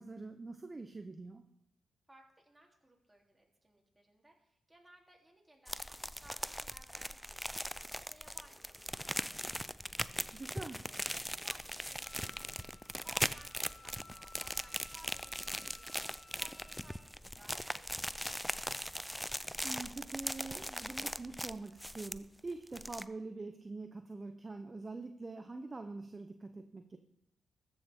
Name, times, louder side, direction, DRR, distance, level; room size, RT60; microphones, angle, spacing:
voice 1, 0.0-1.4 10.3-10.8 19.6-27.0, right 3 dB, 35° right, 7 dB, 0.8 m, -45 dB
voice 2, 2.1-9.5 10.8-12.7 13.0-18.4, right 2 dB, 15° right, -1 dB, 3.3 m, -61 dB
sound 1, 5.7-22.4 22.7-23.1, equal, ahead, 0.4 m, -40 dB
Wind instrument woodwind instrument, 12.0-17.2, left 3 dB, 30° left, 2.1 m, -59 dB
14.0 x 7.1 x 3.7 m, 0.80 s
supercardioid pair, 45°, 0 cm